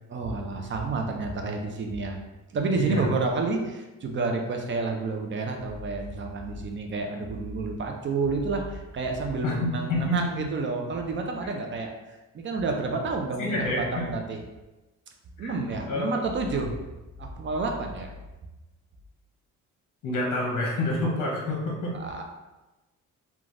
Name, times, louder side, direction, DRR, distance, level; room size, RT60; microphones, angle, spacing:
voice 1, 0.1-2.2 2.5-14.4 15.4-16.7 17.2-18.1 22.0-22.2, right 3 dB, 40° right, 3 dB, 0.4 m, -30 dB
voice 2, 2.8-3.1 9.4-10.3 13.4-14.0 15.4-16.2 20.0-22.0, left 1 dB, 70° left, -3 dB, 0.7 m, -28 dB
3.2 x 2.3 x 2.5 m, 1.1 s
cardioid pair, 120°, 32 cm